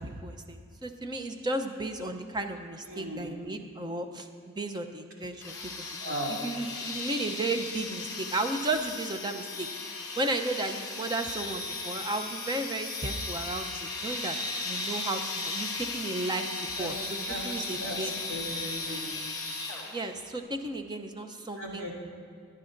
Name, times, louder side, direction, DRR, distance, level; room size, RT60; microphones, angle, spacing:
voice 1, 0.0-9.7 10.2-14.4 14.6-17.0 17.4-18.2 19.9-21.9, right 2 dB, 20° right, 6 dB, 0.6 m, -34 dB
voice 2, 2.9-3.3 6.0-6.3 16.8-16.9 17.3-19.1 21.6-21.9, equal, 65° right, -4 dB, 2.9 m, -37 dB
sound 1, 5.4-20.2, left 3 dB, 15° left, 1.4 m, -36 dB
23.5 x 9.8 x 2.6 m, 2.3 s
head